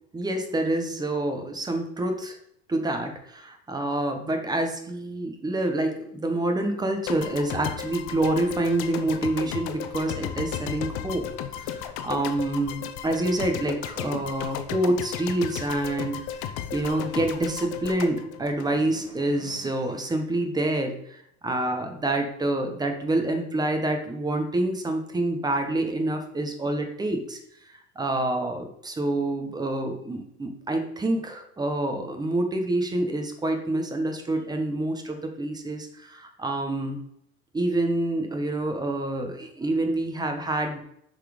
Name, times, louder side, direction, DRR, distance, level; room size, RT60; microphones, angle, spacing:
voice 1, 0.1-2.4 2.7-11.3 11.6-11.8 12.0-16.2 16.7-27.4 28.0-37.0 37.5-40.8, right 1 dB, 10° right, 5 dB, 0.8 m, -27 dB
sound 1, 7.1-19.3, left 9 dB, 60° left, 0.8 m, -35 dB
6.4 x 4.1 x 4.9 m, 0.72 s
supercardioid pair, 140°, 40 cm